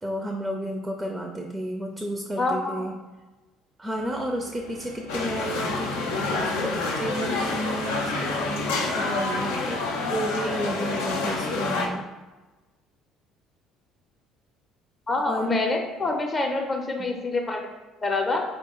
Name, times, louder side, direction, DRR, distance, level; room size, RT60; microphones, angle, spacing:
voice 1, 0.0-3.0 3.8-12.1 15.2-15.5, equal, 15° right, 3 dB, 0.4 m, -32 dB
voice 2, 2.4-2.9 15.1-17.7 18.0-18.4, left 2 dB, 30° left, 2 dB, 0.6 m, -26 dB
sound 1, 3.9-8.9, right 2 dB, 85° right, 0.3 m, -44 dB
sound 2, 5.1-11.9, left 3 dB, 75° left, 0.4 m, -28 dB
4.2 x 2.1 x 3.0 m, 1.2 s
figure-of-eight pair, 55°, 0 cm